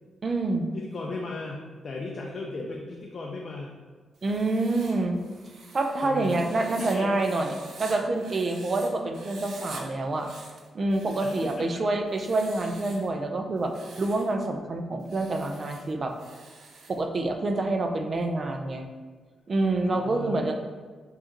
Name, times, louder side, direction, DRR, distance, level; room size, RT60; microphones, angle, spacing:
voice 1, 0.2-0.7 4.2-5.2 5.7-10.3 10.7-13.7 14.0-16.1 16.9-18.9 19.5-20.6, right 2 dB, 40° right, 4 dB, 0.5 m, -27 dB
voice 2, 0.7-3.8 6.0-7.3 11.2-11.8 19.7-20.6, left 3 dB, 45° left, -1 dB, 0.5 m, -36 dB
Writing, 4.1-8.9 9.1-9.8 10.1-11.7 12.1-13.1 13.6-14.3 15.0-17.0, right 3 dB, 75° right, 0.7 m, -47 dB
6.6 x 2.5 x 2.9 m, 1.5 s
cardioid pair, 110°, 0 cm